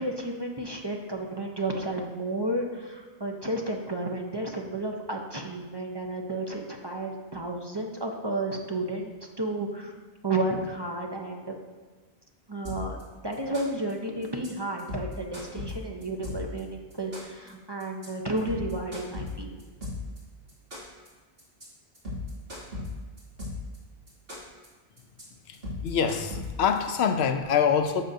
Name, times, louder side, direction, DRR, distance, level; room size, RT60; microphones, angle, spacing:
voice 1, 0.0-9.1 9.4-9.9 10.2-11.5 12.5-13.0 13.2-19.6, right 2 dB, 30° right, 1 dB, 0.7 m, -32 dB
sound 1, 12.6-13.0 13.3-13.9 14.2-14.5 14.8-16.6 16.9-17.5 17.8-18.1 18.4-20.2 20.5-21.1 21.4-21.6 21.9-23.8 24.1-24.7 25.0-25.2 25.5-26.8, left 3 dB, 70° right, 2.7 m, -36 dB
voice 2, 25.8-28.0, left 7 dB, 85° left, 8 dB, 0.9 m, -25 dB
11.0 x 6.6 x 2.7 m, 1.4 s
omnidirectional pair, 1.0 m